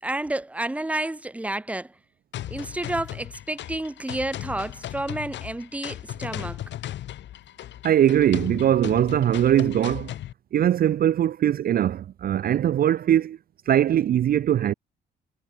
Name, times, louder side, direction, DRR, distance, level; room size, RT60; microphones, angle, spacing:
voice 1, 0.0-1.9 2.5-6.6, right 1 dB, 5° right, 0.8 m, -30 dB
sound 1, 2.3-10.3, left 12 dB, 65° left, 0.7 m, -36 dB
voice 2, 7.8-10.1 10.5-13.4 13.7-14.7, right 11 dB, 50° right, 0.4 m, -21 dB
cardioid pair, 90°, 20 cm